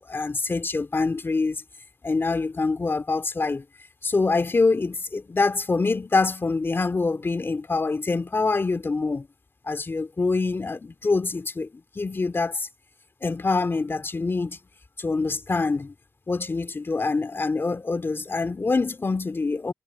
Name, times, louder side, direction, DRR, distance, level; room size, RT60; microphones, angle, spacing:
voice 1, 0.1-1.6 2.0-3.6 4.0-9.3 9.7-11.7 11.9-12.7 13.2-14.6 15.0-15.9 16.3-19.7, left 3 dB, 40° left, 2.5 m, -25 dB
cardioid pair, 55°, 6 cm